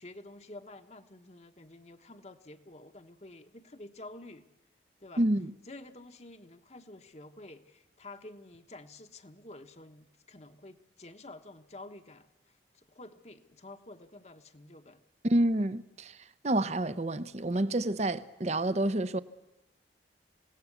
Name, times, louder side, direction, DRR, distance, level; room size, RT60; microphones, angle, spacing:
voice 1, 0.0-4.4 5.0-5.3 5.7-15.0, left 2 dB, 35° left, 1.1 m, -50 dB
voice 2, 5.2-5.5 15.2-16.2 16.4-19.2, right 1 dB, 35° right, 0.7 m, -28 dB
27.5 x 17.5 x 8.2 m
head